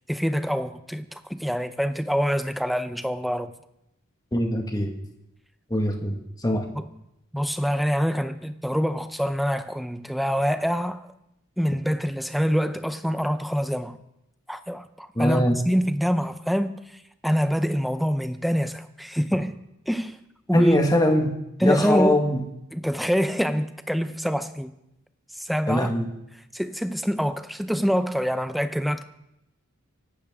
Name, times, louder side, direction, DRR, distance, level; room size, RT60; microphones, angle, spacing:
voice 1, 0.1-3.5 6.7-6.8 7.3-11.0 11.6-14.0 14.5-16.8 17.2-19.5 19.9-20.2 20.5-20.8 21.6-22.2 22.7-24.7 25.4-25.9 26.5-29.0, equal, ahead, 0.6 m, -25 dB
voice 2, 4.3-4.9 5.7-6.2 6.4-6.7 15.1-15.6 20.5-21.3 21.6-22.4 25.7-26.1, left 1 dB, 15° left, 1.7 m, -22 dB
24.5 x 12.0 x 3.7 m
head